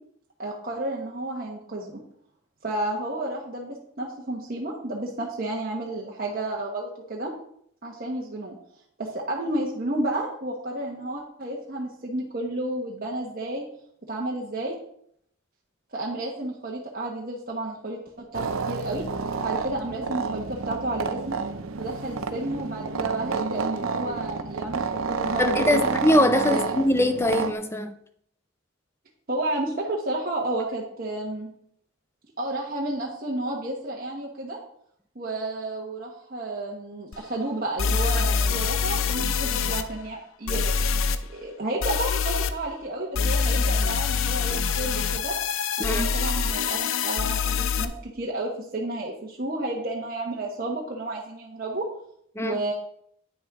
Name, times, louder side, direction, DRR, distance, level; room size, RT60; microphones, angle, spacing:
voice 1, 0.4-2.0 2.6-7.3 7.8-8.5 9.0-13.6 14.1-14.8 15.9-19.0 19.4-21.4 21.8-25.9 26.5-26.6 29.3-31.5 32.4-34.6 35.1-40.7 41.3-45.4 45.8-51.9 52.4-52.7, right 2 dB, 45° right, -2 dB, 1.2 m, -31 dB
sound 1, 18.3-27.5, right 4 dB, 75° right, 0.7 m, -30 dB
voice 2, 25.4-27.9 45.8-46.1 52.4-52.6, left 1 dB, 10° left, 9 dB, 0.5 m, -22 dB
sound 2, 37.1-37.2 37.8-39.8 40.5-41.2 41.8-42.5 43.1-47.8, left 6 dB, 70° left, 0.6 m, -25 dB
9.4 x 6.2 x 4.8 m, 0.68 s
head